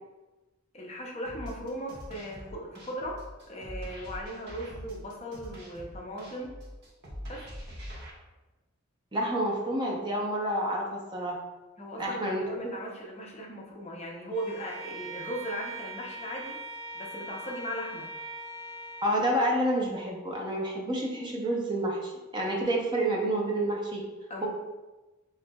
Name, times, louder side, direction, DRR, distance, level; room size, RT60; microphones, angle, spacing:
voice 1, 0.7-6.5 7.3-7.5 11.8-16.6 16.9-18.1 24.3-24.5, equal, 30° left, -1 dB, 0.6 m, -38 dB
sound 1, 1.2-8.1, equal, 50° right, 1.1 m, -43 dB
voice 2, 9.1-11.4 12.0-12.7 19.0-24.0 24.4-24.5, right 1 dB, 20° right, -2 dB, 0.7 m, -29 dB
Bowed string instrument, 14.3-19.2, right 2 dB, 80° right, 1.1 m, -41 dB
6.8 x 2.6 x 2.3 m, 1.1 s
head